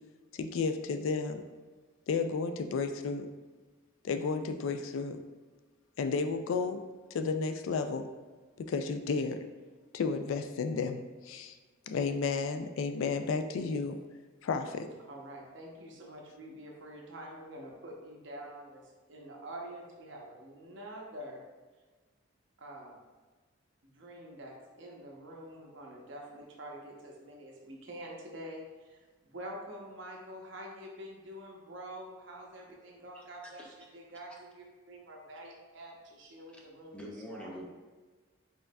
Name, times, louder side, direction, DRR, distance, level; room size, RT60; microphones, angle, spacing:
voice 1, 0.3-1.4 2.1-3.3 4.0-5.2 6.0-6.8 7.1-8.1 8.6-9.4 9.9-11.6 11.9-14.0 14.4-14.9, left 4 dB, 80° left, 8 dB, 0.3 m, -32 dB
voice 2, 15.1-21.4 22.6-23.0 23.8-37.6, right 1 dB, 65° right, -1 dB, 0.8 m, -47 dB
voice 3, 33.1-33.7 36.5-36.6 36.9-37.7, equal, 5° left, -2 dB, 0.5 m, -45 dB
4.6 x 3.7 x 2.3 m, 1.3 s
head